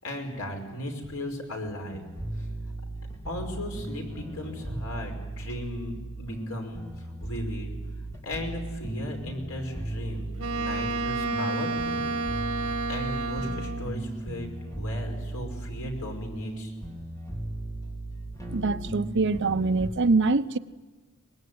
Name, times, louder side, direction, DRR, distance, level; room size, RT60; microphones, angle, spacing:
voice 1, 0.0-2.0 2.3-2.5 3.3-7.7 8.2-12.1 12.3-12.5 12.9-14.5 14.8-16.7, left 1 dB, 75° left, 5.5 m, -36 dB
sound 1, 1.9-19.9, right 1 dB, 15° left, 3.6 m, -36 dB
Wind instrument woodwind instrument, 10.4-13.9, right 3 dB, 85° right, 1.5 m, -30 dB
voice 2, 18.5-20.6, right 3 dB, 55° right, 0.8 m, -24 dB
24.0 x 20.5 x 9.5 m
head